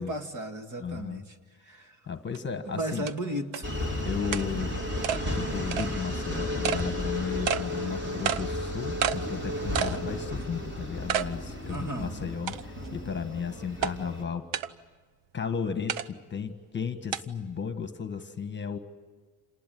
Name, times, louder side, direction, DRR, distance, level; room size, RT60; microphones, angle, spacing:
voice 1, 0.0-1.4 1.6-2.0 2.7-3.7 11.7-12.1, right 1 dB, 40° right, 6 dB, 2.3 m, -35 dB
voice 2, 0.8-1.2 1.7-1.8 2.1-3.1 4.0-4.8 5.3-14.5 15.3-18.8, left 6 dB, 25° left, 8 dB, 1.5 m, -34 dB
sound 1, 2.3-2.4 3.1-3.2 3.5-3.6 4.3-4.5 5.0-5.2 5.7-5.9 6.6-6.8 7.5-7.6 8.2-8.4 9.0-9.2 9.7-10.0 10.4-10.5 11.1-11.3 11.7-11.8 12.5-12.9 13.8-13.9 14.5-14.7 15.9-16.1 17.1-17.2, right 9 dB, 85° right, 1.0 m, -29 dB
sound 2, 3.6-14.2, left 1 dB, 25° right, 4.1 m, -33 dB
28.0 x 19.5 x 9.2 m, 1.5 s
cardioid pair, 150°, 44 cm